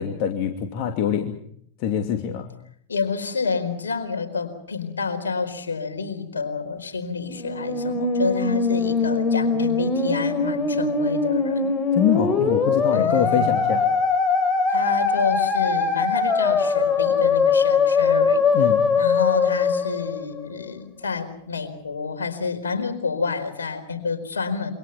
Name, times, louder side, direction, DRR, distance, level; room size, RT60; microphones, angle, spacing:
voice 1, 0.0-1.3 1.8-2.5 11.9-13.8 18.5-18.8, left 9 dB, 45° left, 4 dB, 2.7 m, -24 dB
voice 2, 2.9-11.8 12.9-13.8 14.7-18.4 19.0-24.7, left 5 dB, 75° left, 6 dB, 4.4 m, -29 dB
Musical instrument, 7.3-20.7, left 4 dB, 15° left, 3.9 m, -21 dB
28.0 x 25.0 x 5.8 m, 0.64 s
figure-of-eight pair, 95°, 0 cm